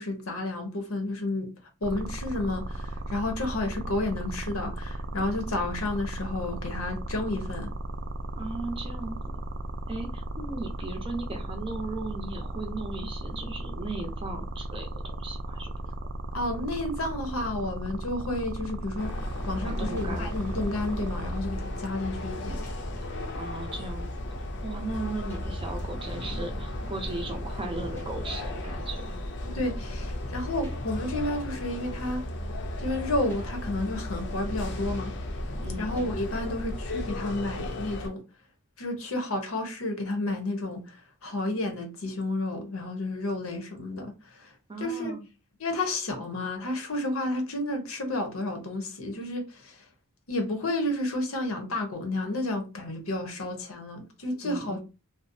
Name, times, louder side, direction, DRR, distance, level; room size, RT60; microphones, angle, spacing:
voice 1, 0.0-1.5 1.8-7.7 16.3-19.1 19.5-22.6 29.4-32.2 32.8-35.1 35.8-38.2 38.8-45.1 45.6-49.8 50.3-54.8, left 2 dB, 85° left, 0.8 m, -31 dB
sound 1, 1.8-21.4, right 1 dB, 80° right, 0.4 m, -36 dB
voice 2, 8.4-9.2 9.9-15.7 19.6-20.3 23.0-24.1 24.4-29.2 35.6-35.9 44.7-45.2 54.4-54.8, right 2 dB, 25° right, 0.5 m, -37 dB
sound 2, 18.2-36.3, equal, 10° left, 0.8 m, -43 dB
sound 3, 19.0-38.1, left 1 dB, 60° left, 0.5 m, -35 dB
2.6 x 2.0 x 2.5 m
head